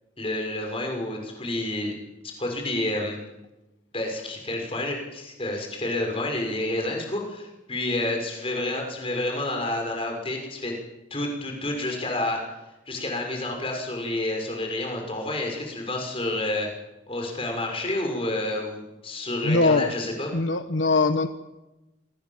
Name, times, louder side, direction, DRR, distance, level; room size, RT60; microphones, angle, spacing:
voice 1, 0.2-1.9 2.4-3.2 3.9-10.7 11.1-12.4 12.9-16.7 17.1-20.3, left 1 dB, 30° left, 2 dB, 6.2 m, -29 dB
voice 2, 19.4-19.9 20.3-21.3, left 3 dB, 75° left, 9 dB, 1.2 m, -21 dB
27.5 x 23.0 x 7.4 m, 1.0 s
head